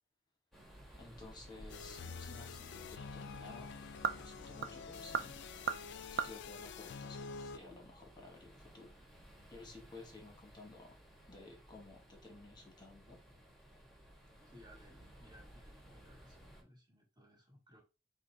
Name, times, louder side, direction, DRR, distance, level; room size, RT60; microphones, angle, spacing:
sound 1, 0.5-16.6, equal, ahead, 1.3 m, -57 dB
voice 1, 0.9-3.7 4.1-5.5 6.1-8.9 9.5-11.0 11.3-13.2, left 2 dB, 20° left, 2 dB, 1.2 m, -54 dB
sound 2, 1.7-7.6, left 5 dB, 60° left, 0.4 m, -48 dB
sound 3, 1.9-7.7, right 7 dB, 55° right, 0.4 m, -43 dB
voice 2, 14.4-17.8, equal, 25° right, -2 dB, 1.7 m, -61 dB
5.0 x 2.2 x 4.4 m, 0.30 s
head